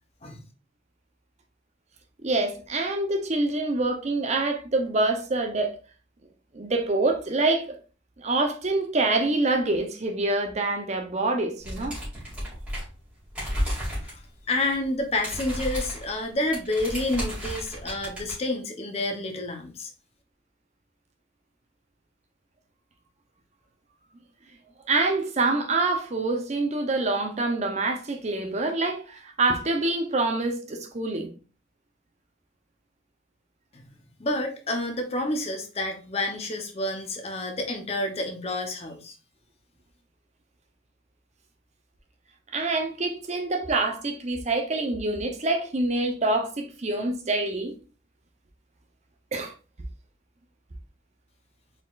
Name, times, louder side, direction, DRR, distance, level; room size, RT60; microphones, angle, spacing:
voice 1, 2.2-5.8 6.5-7.8 8.2-12.0 24.9-31.3 42.5-47.7 49.3-49.5, right 2 dB, 35° right, 0.6 m, -26 dB
sound 1, 11.6-13.0 13.3-14.2 14.5-14.7 15.0-18.3, equal, 5° right, 2.2 m, -32 dB
voice 2, 14.0-19.9 33.7-33.8 34.2-39.1, left 2 dB, 30° left, 0.7 m, -29 dB
4.3 x 3.8 x 2.4 m
head